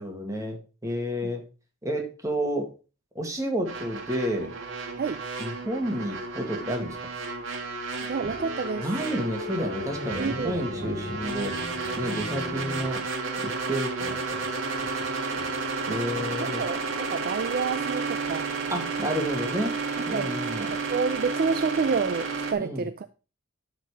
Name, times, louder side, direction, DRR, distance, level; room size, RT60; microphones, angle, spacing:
voice 1, 0.0-1.4 1.8-2.7 3.2-4.5 5.4-7.0 8.8-11.5 12.0-13.0 13.4-14.6 15.3-15.5 15.9-16.6 18.7-19.7 20.1-20.7 22.6-22.8, equal, 15° right, 1.8 m, -30 dB
sound 1, 3.7-22.5, right 4 dB, 70° right, 1.9 m, -32 dB
voice 2, 7.9-8.9 10.1-10.8 15.9-18.5 20.1-20.3 20.6-23.1, right 5 dB, 50° right, 0.4 m, -29 dB
sound 2, 8.2-13.0, left 2 dB, 80° left, 1.8 m, -38 dB
11.5 x 4.1 x 4.7 m
head